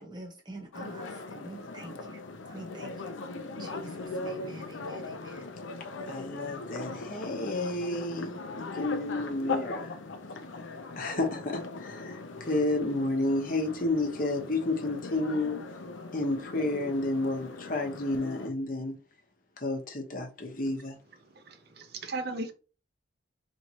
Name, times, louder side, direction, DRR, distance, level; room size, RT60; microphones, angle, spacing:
voice 1, 0.0-3.1 3.6-5.5, right 1 dB, 20° right, 1.0 m, -47 dB
sound 1, 0.7-18.5, left 3 dB, 80° left, 0.6 m, -40 dB
voice 2, 6.1-10.0 11.0-15.6 16.1-19.0 19.6-21.0, left 2 dB, 45° left, 0.9 m, -31 dB
voice 3, 21.5-22.5, right 2 dB, 55° right, 0.6 m, -36 dB
4.3 x 3.2 x 2.8 m
head